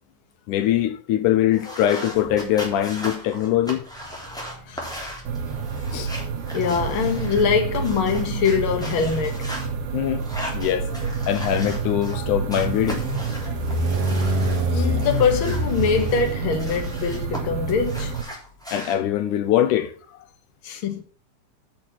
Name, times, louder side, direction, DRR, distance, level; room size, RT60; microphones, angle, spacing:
voice 1, 0.5-3.8 5.9-6.1 9.9-10.3 10.5-13.0 13.5-13.6 14.7-14.9 18.7-19.9, left 11 dB, 75° left, 1.9 m, -22 dB
sound 1, 1.5-7.4 7.7-9.7 10.2-12.2 12.5-14.6 15.0-17.4 17.7-18.9, equal, ahead, 2.9 m, -37 dB
sound 2, 2.1-2.8 3.9-17.6, equal, 55° right, 2.4 m, -30 dB
voice 2, 4.7-5.1 6.5-9.5 14.7-18.2 20.6-21.0, left 6 dB, 45° left, 1.9 m, -23 dB
sound 3, 5.3-18.2, right 5 dB, 90° right, 3.0 m, -29 dB
8.7 x 6.3 x 7.3 m
omnidirectional pair, 4.1 m